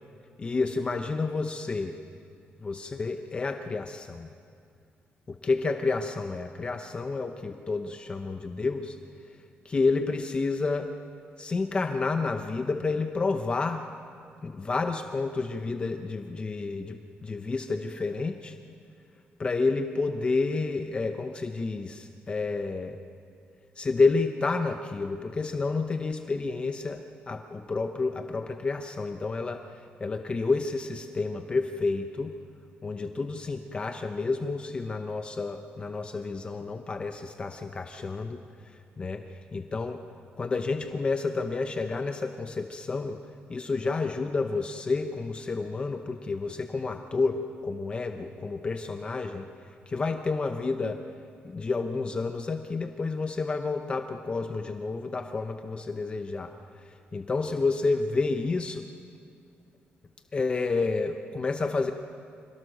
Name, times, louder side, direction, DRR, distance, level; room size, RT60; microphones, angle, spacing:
voice 1, 0.4-2.0 2.6-4.3 5.3-9.0 9.6-10.9 11.4-13.9 14.4-18.6 19.4-23.0 23.8-29.7 30.0-32.3 32.8-38.4 39.0-39.2 39.5-40.0 40.4-43.2 43.5-49.5 49.9-51.0 51.4-56.5 56.9-58.9 60.3-61.9, left 3 dB, 25° left, 6 dB, 0.8 m, -30 dB
26.0 x 17.5 x 6.5 m, 2.3 s
cardioid pair, 150°, 4 cm